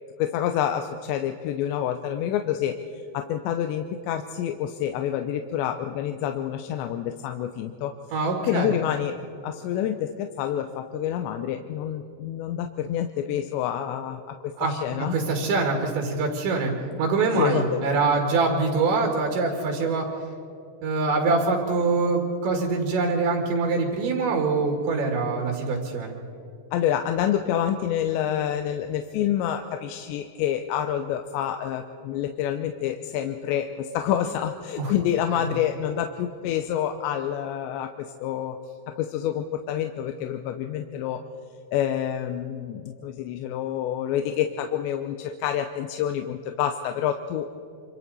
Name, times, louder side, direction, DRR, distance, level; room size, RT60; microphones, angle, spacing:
voice 1, 0.2-2.8 3.1-7.9 8.5-9.2 9.4-15.2 17.4-17.9 26.7-38.6 38.9-41.2 41.7-47.5, left 10 dB, 80° left, 7 dB, 2.9 m, -28 dB
voice 2, 8.1-8.7 14.6-14.7 15.0-16.7 17.0-20.1 20.8-26.2 34.8-34.9 35.3-35.4, right 3 dB, 80° right, 1 dB, 4.3 m, -24 dB
27.0 x 26.0 x 4.1 m, 2.6 s
omnidirectional pair, 5.2 m